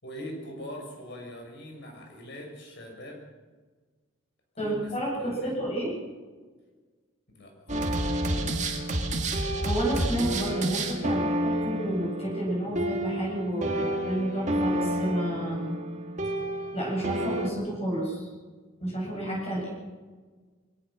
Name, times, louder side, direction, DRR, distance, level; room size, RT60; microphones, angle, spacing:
voice 1, 0.0-3.2 4.5-5.6 7.3-8.1, equal, 55° left, 2 dB, 6.5 m, -42 dB
voice 2, 4.6-5.9 9.6-15.7 16.7-18.3 18.8-19.7, right 1 dB, 30° left, -4 dB, 8.0 m, -30 dB
sound 1, 7.7-17.5, right 1 dB, 35° right, 2.2 m, -29 dB
23.5 x 18.0 x 6.3 m, 1.4 s
head